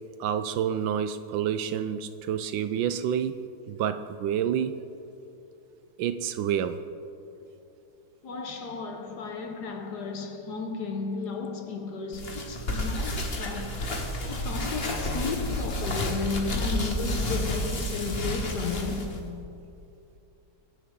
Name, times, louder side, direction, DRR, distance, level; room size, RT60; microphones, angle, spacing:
voice 1, 0.2-3.4 3.7-4.7 6.0-6.8, right 9 dB, 75° right, 1.2 m, -28 dB
voice 2, 8.2-19.3, left 4 dB, 60° left, 1.4 m, -34 dB
sound 1, 12.1-19.2, left 1 dB, 35° left, 1.4 m, -30 dB
23.0 x 10.0 x 3.7 m
omnidirectional pair, 2.3 m